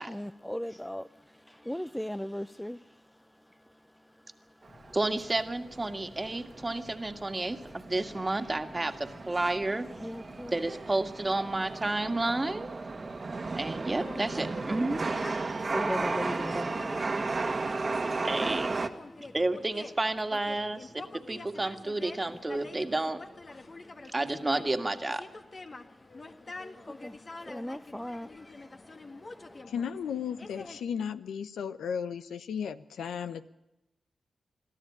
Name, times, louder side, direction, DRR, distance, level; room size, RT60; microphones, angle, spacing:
voice 1, 0.0-5.0 7.6-7.8 9.9-10.6 13.5-14.0 15.5-18.3 18.9-19.3 23.6-24.1 26.3-29.7, equal, 5° left, 14 dB, 0.6 m, -41 dB
Chatter / Subway metro underground, 4.6-18.9, right 3 dB, 50° right, 1.7 m, -34 dB
sound 1, 4.7-18.0, left 2 dB, 70° left, 7.3 m, -56 dB
voice 2, 4.9-9.9 10.5-12.7 13.6-15.0 18.2-18.7 19.3-23.2 24.1-25.2, right 2 dB, 30° right, 7 dB, 1.9 m, -31 dB
sound 2, 14.0-30.8, left 3 dB, 45° left, 1.8 m, -46 dB
voice 3, 29.7-33.5, left 7 dB, 90° left, 11 dB, 0.8 m, -35 dB
22.5 x 14.0 x 8.7 m, 0.91 s
supercardioid pair, 40°, 0 cm